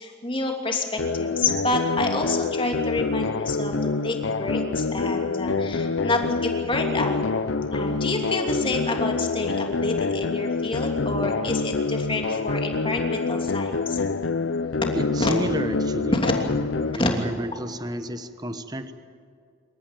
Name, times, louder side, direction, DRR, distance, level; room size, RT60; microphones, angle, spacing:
voice 1, 0.0-7.2 7.7-14.0 15.2-15.3 16.1-16.3 16.9-17.1, left 2 dB, 25° left, 2 dB, 3.0 m, -28 dB
sound 1, 1.0-17.0, left 4 dB, 85° left, 0.7 m, -26 dB
voice 2, 14.9-16.2 16.9-18.9, right 1 dB, 20° right, 9 dB, 1.1 m, -31 dB
27.0 x 14.0 x 9.0 m, 2.4 s
head